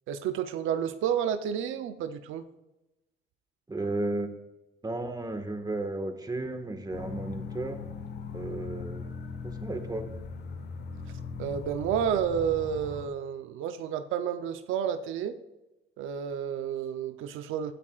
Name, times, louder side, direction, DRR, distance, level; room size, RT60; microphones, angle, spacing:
voice 1, 0.1-2.4 11.4-15.4 16.0-17.7, right 8 dB, 90° right, 9 dB, 0.7 m, -30 dB
voice 2, 3.7-4.3 4.8-7.8 8.3-9.0 9.4-10.1, right 2 dB, 20° right, 6 dB, 1.7 m, -33 dB
sound 1, 6.9-13.1, left 5 dB, 60° left, 1.2 m, -39 dB
16.5 x 9.9 x 2.5 m, 0.98 s
cardioid pair, 90°, 20 cm